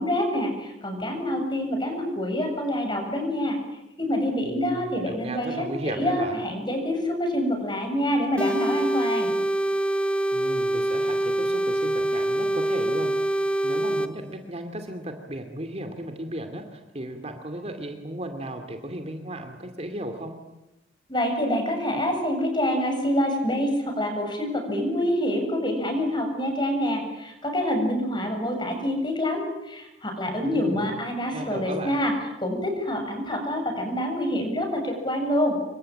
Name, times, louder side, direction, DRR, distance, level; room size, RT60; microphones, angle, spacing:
voice 1, 0.0-3.6 4.0-9.3 21.1-32.1 32.4-35.6, equal, 25° left, 4 dB, 7.4 m, -26 dB
voice 2, 4.4-6.4 10.3-13.1 13.6-20.4 30.4-30.8 31.3-32.0, right 1 dB, 30° right, 6 dB, 2.5 m, -35 dB
sound 1, 8.4-14.1, right 1 dB, 5° left, 1.0 m, -25 dB
27.5 x 24.0 x 9.0 m, 0.93 s
head